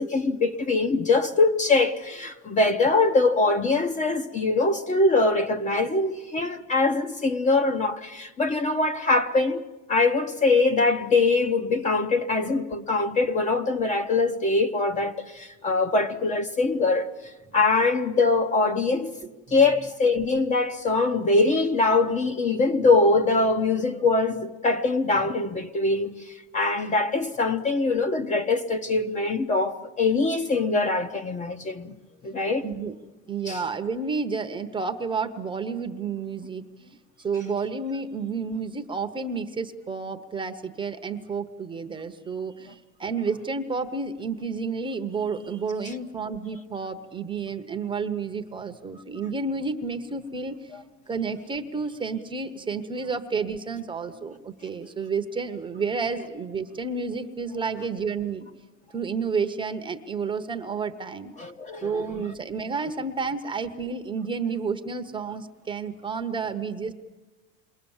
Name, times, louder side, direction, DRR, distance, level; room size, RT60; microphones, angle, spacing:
voice 1, 0.0-9.6 9.9-17.1 17.5-19.1 19.5-31.9 32.2-32.7 33.4-33.6 45.8-45.9 48.0-48.1 50.7-50.8 61.4-62.3, left 3 dB, 20° left, 0.9 m, -23 dB
voice 2, 19.2-19.6 32.6-33.0 33.3-50.7 51.1-58.5 58.9-61.3 61.8-66.9, right 5 dB, 15° right, 0.9 m, -31 dB
28.0 x 22.5 x 7.2 m
cardioid pair, 155°, 35 cm